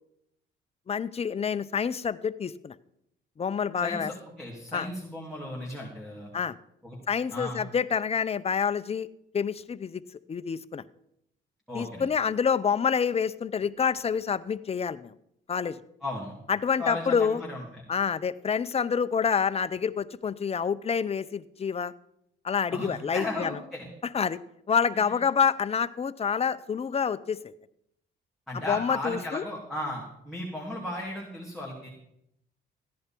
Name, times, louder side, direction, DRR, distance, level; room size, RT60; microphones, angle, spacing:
voice 1, 0.9-2.7 3.4-4.1 4.7-4.9 6.3-6.5 7.1-9.1 9.3-10.0 10.3-10.8 11.7-15.1 15.5-15.8 16.5-17.4 17.9-21.9 22.4-23.5 24.1-24.4 24.7-27.4 28.7-29.4, left 6 dB, 30° left, 14 dB, 0.6 m, -27 dB
voice 2, 3.8-6.3 6.8-7.0 7.3-7.6 11.7-12.0 16.0-16.3 16.8-17.8 22.7-23.9 24.9-25.2 28.5-31.9, left 1 dB, ahead, -5 dB, 3.1 m, -36 dB
15.0 x 10.5 x 4.5 m, 0.78 s
cardioid pair, 90°, 20 cm